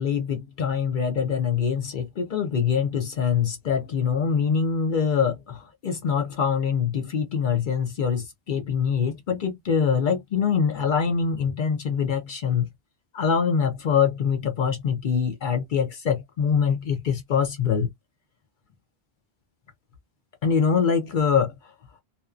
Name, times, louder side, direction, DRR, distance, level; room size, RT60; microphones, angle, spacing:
voice 1, 0.0-12.7 13.1-17.9 20.4-21.5, left 6 dB, 60° left, 0.7 m, -24 dB
2.6 x 2.0 x 2.4 m
omnidirectional pair, 1.0 m